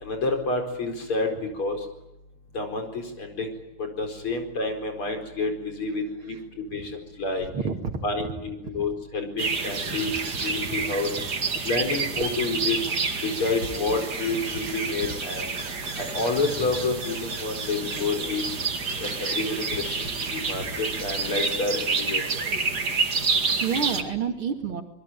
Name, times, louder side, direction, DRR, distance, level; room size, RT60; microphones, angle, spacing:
voice 1, 0.0-1.3 1.6-1.8 2.5-3.5 3.8-6.4 6.7-7.5 8.0-10.1 10.4-11.1 11.6-12.8 13.2-15.5 16.0-18.4 19.0-22.2, left 3 dB, 80° left, 5 dB, 5.5 m, -29 dB
voice 2, 7.4-8.0 8.6-8.9 9.9-10.0 10.6-10.8 23.3-24.8, right 6 dB, 75° right, 5 dB, 3.2 m, -30 dB
sound 1, 9.4-24.0, right 4 dB, 50° right, 2.6 m, -29 dB
26.0 x 21.5 x 9.2 m, 0.87 s
omnidirectional pair, 2.3 m